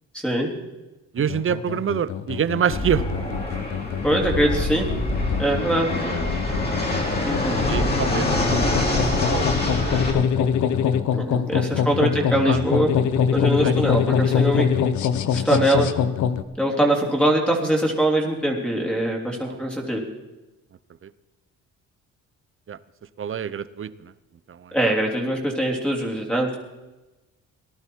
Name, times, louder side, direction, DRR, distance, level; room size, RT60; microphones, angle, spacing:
voice 1, 0.1-0.5 4.0-4.9 5.4-5.9 7.2-7.6 11.1-12.9 13.3-14.7 15.3-15.9 16.6-20.0 24.7-26.6, right 1 dB, 5° left, 0 dB, 3.3 m, -22 dB
voice 2, 1.1-3.0 6.1-6.2 7.7-10.0 12.4-12.6 13.6-13.7 19.4-19.6 21.0-21.1 22.7-22.8 23.2-24.1 24.5-24.8, right 8 dB, 45° right, 16 dB, 0.8 m, -27 dB
sound 1, 1.2-16.4, left 7 dB, 70° left, 1.0 m, -24 dB
Fixed-wing aircraft airplane, 2.7-10.1, left 1 dB, 30° left, 4.6 m, -25 dB
19.0 x 11.5 x 4.7 m, 1.1 s
cardioid pair, 90°, 30 cm